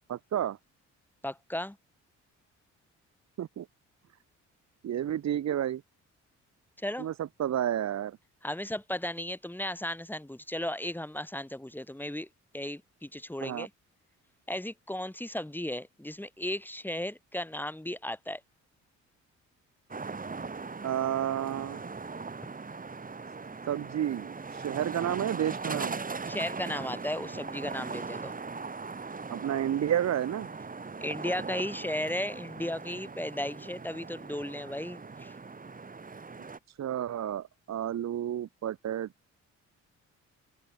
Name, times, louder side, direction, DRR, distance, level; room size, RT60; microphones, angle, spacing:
voice 1, 0.1-0.6 3.4-3.7 4.8-5.8 7.0-8.2 13.4-13.7 20.8-21.8 23.7-26.0 29.3-30.5 36.8-39.1, right 10 dB, 60° right, 2.0 m, -31 dB
voice 2, 1.2-1.8 6.8-7.1 8.4-12.3 12.5-13.7 14.5-18.4 26.3-28.3 31.0-35.3, left 1 dB, 5° left, 6.9 m, -35 dB
sound 1, 19.9-36.6, right 4 dB, 25° right, 3.9 m, -39 dB
cardioid pair, 90°, 30 cm